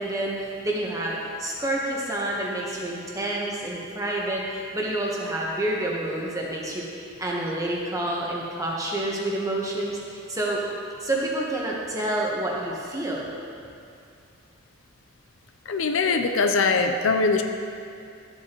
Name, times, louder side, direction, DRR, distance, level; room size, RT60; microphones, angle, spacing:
voice 1, 0.0-10.6 11.0-13.3, right 1 dB, 15° right, -3 dB, 1.1 m, -28 dB
voice 2, 15.7-17.4, left 4 dB, 75° left, 6 dB, 0.5 m, -22 dB
12.5 x 7.8 x 3.0 m, 2.5 s
head